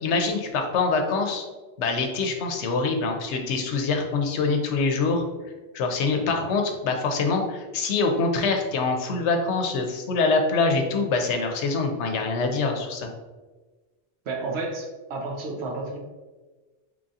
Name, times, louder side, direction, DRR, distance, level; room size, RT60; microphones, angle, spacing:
voice 1, 0.0-1.4 1.8-5.2 5.7-13.1, left 4 dB, 75° left, 4 dB, 0.9 m, -24 dB
voice 2, 14.2-16.0, right 3 dB, 70° right, 0 dB, 0.9 m, -31 dB
3.6 x 3.1 x 2.6 m, 1.2 s
omnidirectional pair, 1.2 m